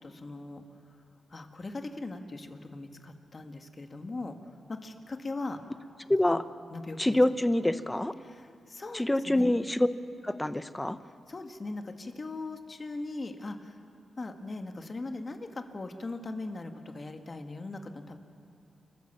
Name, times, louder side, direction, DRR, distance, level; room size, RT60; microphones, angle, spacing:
voice 1, 0.0-0.6 1.3-4.3 4.7-5.6 6.3-6.4 6.7-7.2 8.2-9.5 11.3-13.8 14.2-18.2, left 2 dB, 40° left, 6 dB, 2.0 m, -39 dB
voice 2, 6.1-6.4 7.0-8.1 8.9-9.9 10.2-11.0, left 1 dB, 15° left, 12 dB, 0.9 m, -26 dB
29.5 x 13.0 x 7.3 m, 2.5 s
cardioid pair, 70°, 0 cm